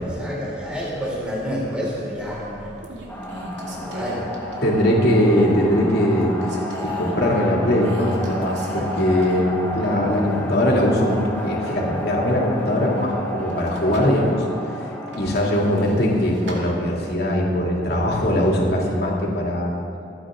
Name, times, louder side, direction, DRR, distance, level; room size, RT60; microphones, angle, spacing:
voice 1, 0.0-2.8 3.6-4.6, equal, 5° right, -6 dB, 3.7 m, -29 dB
sound 1, 2.0-2.4 2.8-5.0 5.4-5.7 6.1-7.1 7.8-9.6 9.9-10.0 13.5-14.2 15.1-16.6, right 1 dB, 80° right, 2.6 m, -35 dB
sound 2, 3.1-18.9, equal, 10° left, 2.0 m, -32 dB
voice 2, 4.6-6.3 6.8-14.4 15.1-19.8, left 1 dB, 60° left, -2 dB, 2.9 m, -21 dB
27.5 x 9.8 x 3.8 m, 2.5 s
head